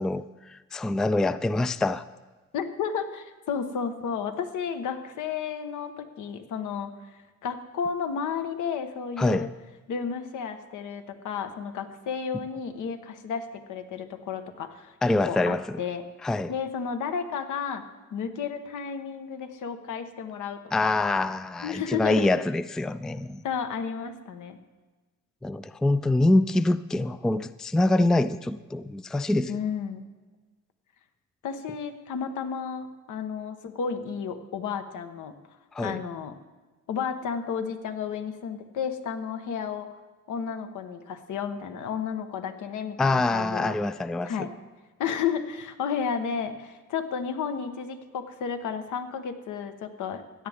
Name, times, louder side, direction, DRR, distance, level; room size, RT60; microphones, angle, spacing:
voice 1, 0.0-2.0 9.2-9.5 15.0-15.8 16.2-16.5 20.7-23.4 25.4-29.6 35.7-36.0 43.0-44.3, left 2 dB, ahead, 0.3 m, -25 dB
voice 2, 2.5-6.9 7.4-9.5 9.9-14.9 15.3-16.0 16.5-17.8 18.1-20.9 21.6-22.3 23.4-24.6 29.5-30.0 31.4-35.3 35.8-36.3 36.9-39.9 40.3-43.8 44.2-44.5 45.0-50.5, left 6 dB, 80° left, 1.2 m, -32 dB
16.5 x 10.5 x 3.5 m
cardioid pair, 90°, 30 cm